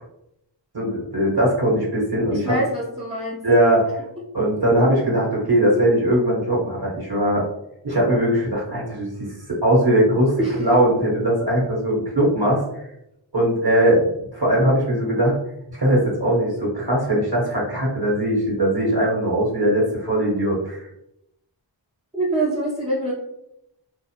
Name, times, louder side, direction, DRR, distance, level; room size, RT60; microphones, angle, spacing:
voice 1, 0.7-2.6 3.4-3.9 4.3-7.4 7.8-12.6 13.3-15.4 15.8-20.9, right 1 dB, 55° right, -4 dB, 1.1 m, -20 dB
voice 2, 2.3-3.4 10.4-10.6 22.1-23.1, right 1 dB, 15° right, -6 dB, 0.5 m, -24 dB
2.5 x 2.1 x 2.8 m, 0.82 s
wide cardioid pair, 55°, 45 cm